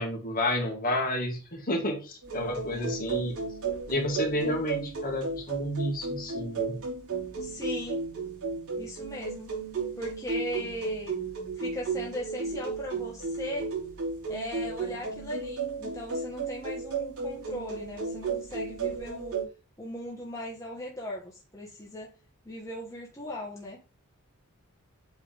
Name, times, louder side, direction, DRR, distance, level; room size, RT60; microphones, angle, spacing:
voice 1, 0.0-3.4 3.9-6.8, left 1 dB, 40° left, 1 dB, 1.9 m, -30 dB
sound 1, 2.2-19.4, right 4 dB, 85° right, 3.9 m, -34 dB
voice 2, 7.4-8.0 8.8-9.5 10.0-11.2 11.6-13.7 14.3-19.3 19.8-22.1 22.4-23.8, equal, 15° left, -3 dB, 1.3 m, -38 dB
8.3 x 3.6 x 3.5 m, 0.32 s
head